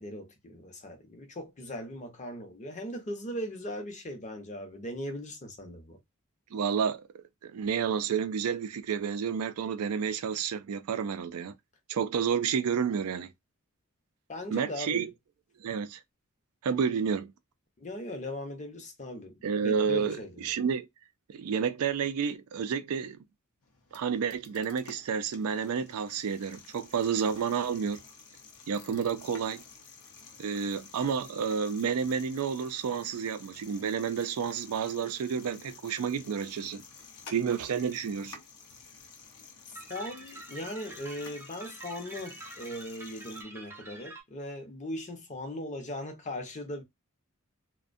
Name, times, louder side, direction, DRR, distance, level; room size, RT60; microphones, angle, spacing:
voice 1, 0.0-6.0 14.3-15.1 17.8-20.5 39.9-46.8, left 1 dB, 35° left, 0.7 m, -39 dB
voice 2, 6.5-7.1 7.4-11.5 11.9-13.3 14.5-15.1 15.6-16.0 16.6-17.3 19.4-20.9 21.3-23.2 23.9-28.0 28.7-29.6 30.4-36.8 37.3-38.4, right 6 dB, 80° right, 0.4 m, -30 dB
sound 1, 23.6-43.4, left 5 dB, 75° left, 0.6 m, -52 dB
sound 2, 39.7-44.2, right 2 dB, 10° right, 0.5 m, -46 dB
2.5 x 2.1 x 2.5 m
head